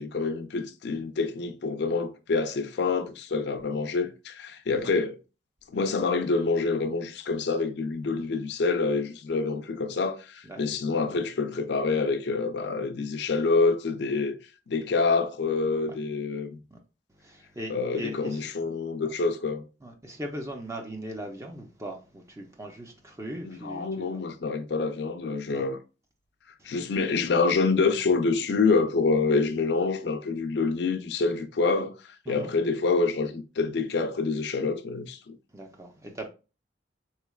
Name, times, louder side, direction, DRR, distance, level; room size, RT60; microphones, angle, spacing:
voice 1, 0.0-5.2 5.7-14.4 14.7-16.5 17.7-19.6 23.4-25.8 26.6-35.4, left 4 dB, 60° left, 0.4 m, -27 dB
voice 2, 17.2-18.4 19.8-24.1 25.5-25.7 32.3-32.5 35.5-36.3, right 1 dB, 15° right, 0.5 m, -39 dB
3.7 x 3.1 x 2.3 m
head